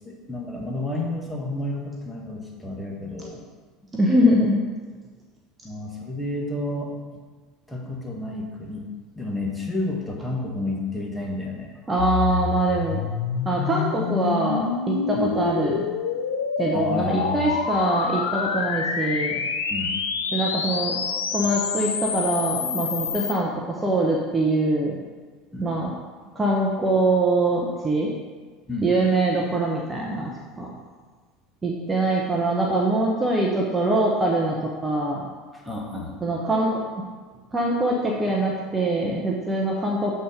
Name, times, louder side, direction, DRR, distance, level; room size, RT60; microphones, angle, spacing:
voice 1, 0.0-3.4 5.6-6.9 7.7-8.9 9.1-11.7 15.1-15.3 16.7-17.5 19.7-19.9 25.5-25.7 28.7-28.9 35.5-36.2, left 2 dB, 5° left, -2 dB, 1.6 m, -30 dB
voice 2, 3.9-4.6 11.9-13.0 13.4-15.9 16.6-19.4 20.3-21.0 21.3-25.0 25.6-25.9 26.3-28.1 28.8-30.7 31.6-35.3 36.2-37.0 37.5-40.2, right 1 dB, 20° right, -2 dB, 1.1 m, -23 dB
sound 1, 12.0-23.3, left 6 dB, 80° left, 0.5 m, -27 dB
7.3 x 4.4 x 5.0 m, 1.4 s
hypercardioid pair, 70°, 0 cm